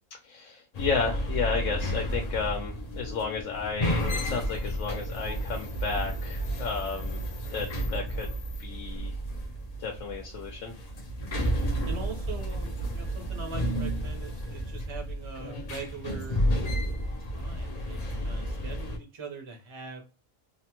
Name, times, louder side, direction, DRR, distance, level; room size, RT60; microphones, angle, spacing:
voice 1, 0.2-7.2 7.5-8.3 8.6-9.2 9.8-10.7, left 5 dB, 75° left, 1 dB, 1.0 m, -32 dB
sound 1, 0.7-19.0, equal, 55° left, 0.4 m, -32 dB
voice 2, 11.8-16.4 17.3-20.0, right 4 dB, 30° right, 2 dB, 0.6 m, -42 dB
2.9 x 2.1 x 2.9 m, 0.31 s
omnidirectional pair, 1.4 m